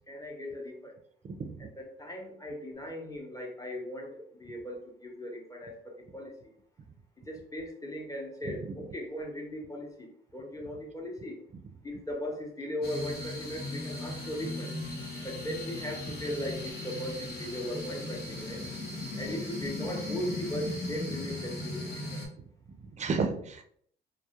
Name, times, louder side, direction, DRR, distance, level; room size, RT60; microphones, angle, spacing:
voice 1, 0.1-0.9 1.8-6.5 7.3-11.4 11.8-14.7 15.2-18.6 19.2-22.2, equal, 15° left, 0 dB, 0.7 m, -38 dB
voice 2, 1.2-1.7 8.4-8.8 22.7-23.6, right 4 dB, 35° right, 6 dB, 0.4 m, -33 dB
sound 1, 12.8-22.3, left 2 dB, 50° left, 0.9 m, -37 dB
2.3 x 2.0 x 2.8 m, 0.64 s
cardioid pair, 90°, 20 cm